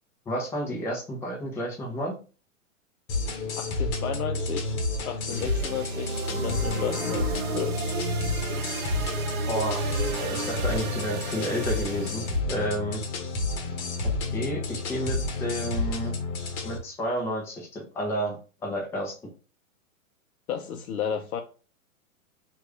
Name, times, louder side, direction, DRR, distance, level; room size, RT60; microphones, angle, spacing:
voice 1, 0.3-2.1 9.5-9.8 10.3-13.0 14.0-16.1 16.6-18.4 18.6-19.1, equal, 5° left, 0.5 m, -31 dB
sound 1, 3.1-16.8, left 2 dB, 55° left, 0.9 m, -30 dB
voice 2, 3.5-4.8 5.0-7.8 20.5-21.4, left 8 dB, 90° left, 0.6 m, -33 dB
sound 2, 5.3-12.4, right 6 dB, 65° right, 0.9 m, -35 dB
3.0 x 2.5 x 3.2 m
hypercardioid pair, 130°, 42 cm